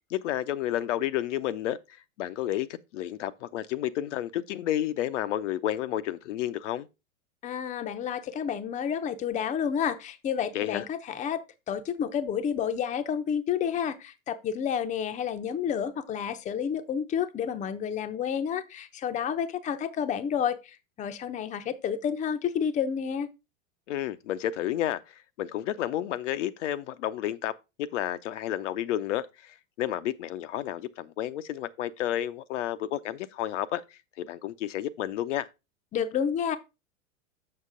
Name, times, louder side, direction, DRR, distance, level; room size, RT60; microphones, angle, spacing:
voice 1, 0.1-6.9 10.5-10.9 23.9-27.5 27.8-35.5, left 12 dB, 60° left, 0.6 m, -31 dB
voice 2, 7.4-11.4 11.7-23.3 35.9-36.6, left 8 dB, 20° left, 0.6 m, -30 dB
6.6 x 6.3 x 3.7 m
hypercardioid pair, 95°, 41 cm